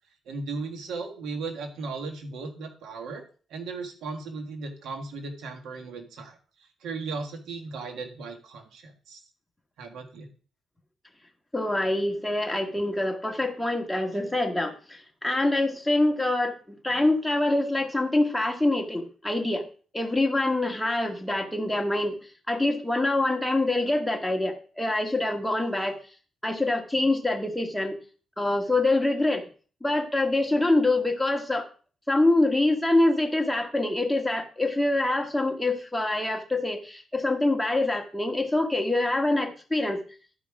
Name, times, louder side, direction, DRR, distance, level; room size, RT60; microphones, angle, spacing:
voice 1, 0.2-3.2 3.5-9.2 9.8-10.3, right 4 dB, 90° right, 4 dB, 1.7 m, -36 dB
voice 2, 11.5-19.6 19.9-22.2 22.5-26.0 26.4-28.0 28.4-29.5 29.8-31.7 32.1-40.1, left 2 dB, 5° left, 3 dB, 1.8 m, -25 dB
12.0 x 5.0 x 4.9 m, 0.39 s
cardioid pair, 95°, 0 cm